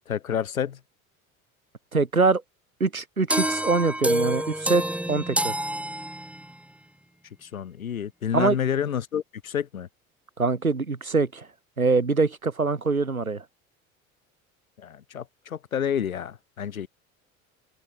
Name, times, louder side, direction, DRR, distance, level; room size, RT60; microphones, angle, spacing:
voice 1, 0.1-0.8 7.4-9.9 14.8-16.9, left 8 dB, 75° left, 2.8 m, -29 dB
voice 2, 1.9-2.4 2.8-4.8 5.1-5.5 8.3-8.5 10.4-11.5 11.8-13.4, right 4 dB, 90° right, 1.5 m, -24 dB
sound 1, 3.3-6.6, right 1 dB, 5° right, 2.5 m, -27 dB
open air
figure-of-eight pair, 65°, 41 cm